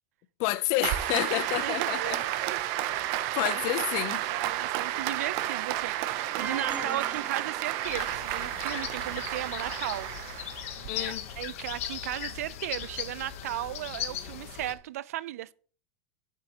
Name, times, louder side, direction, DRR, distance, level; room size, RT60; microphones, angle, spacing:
voice 1, 0.4-2.5 3.3-4.2 10.9-11.3, left 18 dB, 40° left, 0.5 m, -30 dB
Applause, 0.8-10.9, right 13 dB, 40° right, 0.6 m, -31 dB
voice 2, 1.6-2.2 2.5-2.6 2.9-10.1 10.9-15.5, right 14 dB, 90° right, 0.4 m, -36 dB
sound 1, 6.4-8.5, right 5 dB, 15° right, 1.2 m, -39 dB
sound 2, 7.8-14.7, left 10 dB, 65° left, 1.0 m, -38 dB
9.7 x 8.2 x 2.9 m
supercardioid pair, 170°, 8 cm